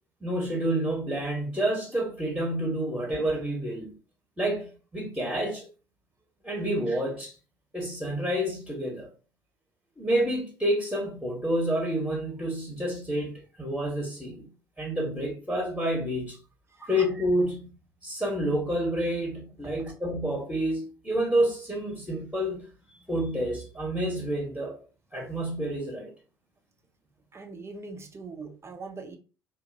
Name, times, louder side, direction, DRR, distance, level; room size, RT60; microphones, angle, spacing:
voice 1, 0.2-3.9 4.4-5.7 6.4-7.3 7.7-9.1 10.0-14.5 14.8-16.4 16.8-17.7 18.0-22.7 23.1-24.8 25.1-26.1, right 1 dB, 5° right, 1.0 m, -29 dB
voice 2, 27.3-29.2, right 3 dB, 25° right, 0.6 m, -42 dB
2.9 x 2.5 x 2.6 m
figure-of-eight pair, 60°, 11 cm